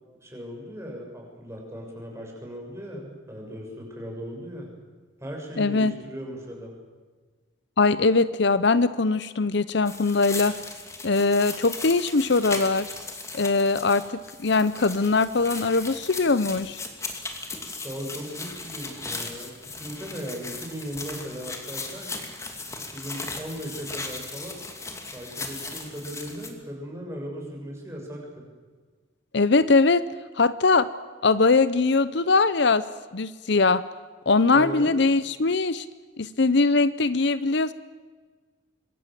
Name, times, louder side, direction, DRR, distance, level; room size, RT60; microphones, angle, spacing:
voice 1, 0.2-4.7 5.2-6.7 17.8-22.1 22.9-24.6 25.1-28.5 34.5-34.9, equal, 15° right, 0 dB, 6.8 m, -37 dB
voice 2, 5.6-5.9 7.8-10.5 11.0-12.9 13.3-16.8 29.3-30.0 30.4-30.9 31.2-32.8 33.1-33.8 34.3-35.9 36.2-37.7, left 3 dB, 60° left, 15 dB, 0.8 m, -21 dB
sound 1, 9.9-26.5, left 3 dB, 15° left, 2.7 m, -37 dB
26.5 x 23.0 x 7.7 m, 1.4 s
head